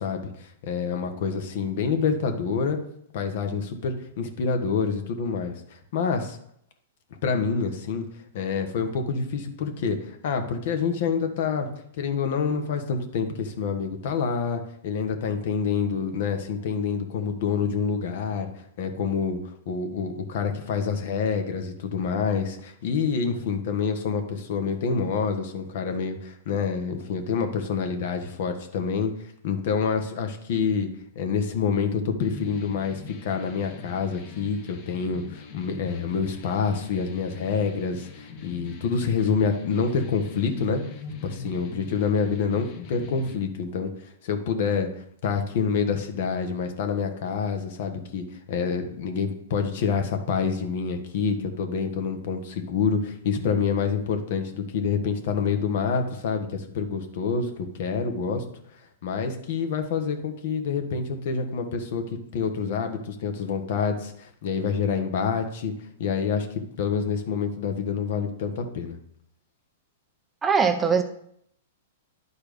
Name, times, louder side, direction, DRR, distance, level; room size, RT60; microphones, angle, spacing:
voice 1, 0.0-2.8 3.1-5.5 5.9-6.4 7.2-8.0 8.3-11.7 11.9-18.5 18.8-19.4 19.6-29.1 29.4-30.9 31.1-40.8 41.2-43.9 44.2-44.9 45.2-58.4 59.0-62.0 62.3-65.7 66.0-66.5 66.8-69.0, left 6 dB, 60° left, 6 dB, 1.4 m, -27 dB
sound 1, 32.2-43.4, left 4 dB, 40° left, 1.3 m, -42 dB
voice 2, 70.4-71.0, right 6 dB, 15° right, 7 dB, 0.6 m, -21 dB
10.5 x 4.4 x 5.2 m, 0.70 s
hypercardioid pair, 140°, 0 cm